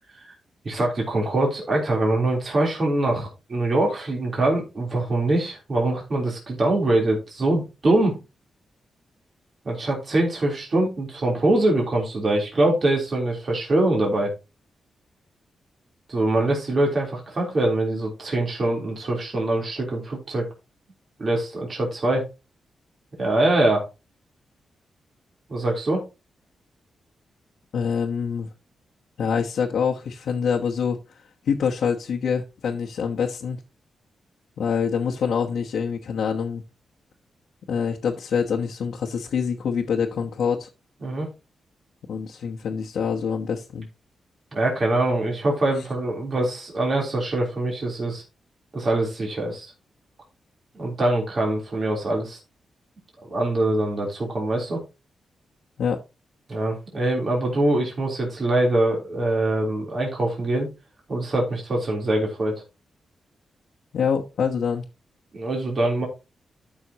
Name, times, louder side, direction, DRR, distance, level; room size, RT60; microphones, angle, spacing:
voice 1, 0.7-8.2 9.7-14.3 16.1-20.5 21.2-22.2 23.2-23.8 25.5-26.0 41.0-41.3 44.5-48.2 48.7-49.7 50.8-52.4 53.3-54.8 56.5-60.7 61.1-62.6 65.3-66.1, right 2 dB, 40° right, 3.6 m, -23 dB
voice 2, 27.7-28.5 29.2-31.0 31.5-33.6 34.6-36.6 37.7-40.7 42.1-43.9 55.8-56.0 63.9-64.8, left 6 dB, 75° left, 1.2 m, -25 dB
12.5 x 6.3 x 3.0 m
wide cardioid pair, 135°, 0 cm